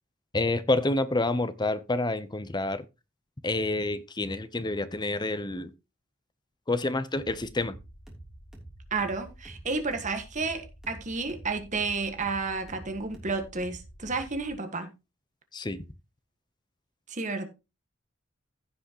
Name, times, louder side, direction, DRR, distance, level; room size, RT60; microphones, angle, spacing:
voice 1, 0.3-2.8 3.4-5.7 6.7-7.7 15.5-15.8, left 2 dB, 20° left, 0.7 m, -28 dB
sound 1, 7.1-14.5, right 1 dB, 5° right, 3.0 m, -48 dB
voice 2, 8.9-14.9 17.1-17.5, right 4 dB, 35° right, 1.6 m, -31 dB
15.5 x 6.2 x 3.0 m
head